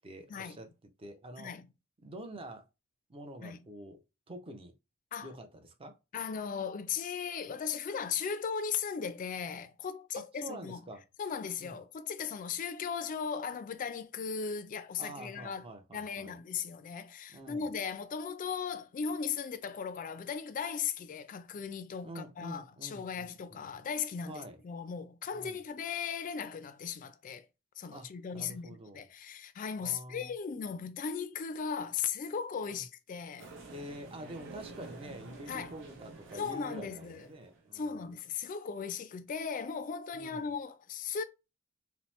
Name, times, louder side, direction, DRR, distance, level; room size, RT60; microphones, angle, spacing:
voice 1, 0.0-0.7 1.0-1.5 2.0-2.7 3.1-4.0 4.3-4.7 5.2-6.0 10.1-11.0 11.6-11.8 15.0-16.4 17.3-17.7 22.0-23.7 24.3-24.6 25.3-25.6 27.9-29.1 29.8-30.3 32.7-32.8 33.7-38.0 40.1-40.5, right 1 dB, 25° right, 0.5 m, -47 dB
voice 2, 1.4-1.7 3.4-3.6 5.1-5.3 6.1-10.8 11.2-15.6 15.9-27.5 27.8-33.5 35.5-35.7 36.3-37.2 37.7-41.2, left 6 dB, 40° left, 0.3 m, -37 dB
sound 1, 33.4-37.8, right 3 dB, 60° right, 0.7 m, -49 dB
2.8 x 2.0 x 3.1 m
head